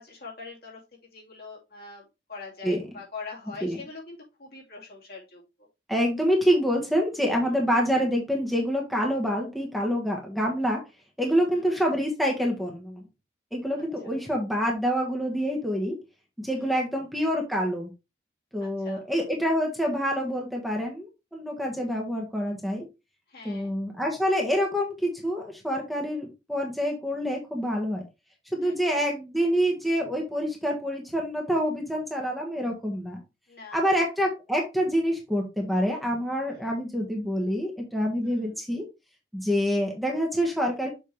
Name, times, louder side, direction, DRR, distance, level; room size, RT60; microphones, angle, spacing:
voice 1, 0.0-5.7 11.2-11.7 13.8-14.4 16.6-16.9 18.6-19.3 23.3-23.7 28.6-29.1 33.5-34.1 36.5-36.8 38.2-38.6, left 4 dB, 55° left, -4 dB, 2.9 m, -44 dB
voice 2, 5.9-10.8 11.2-13.0 13.5-16.0 16.4-17.9 18.5-22.9 23.4-28.0 28.5-33.2 33.7-38.8 39.3-40.9, equal, ahead, -1 dB, 1.4 m, -26 dB
7.0 x 4.8 x 3.4 m, 0.26 s
head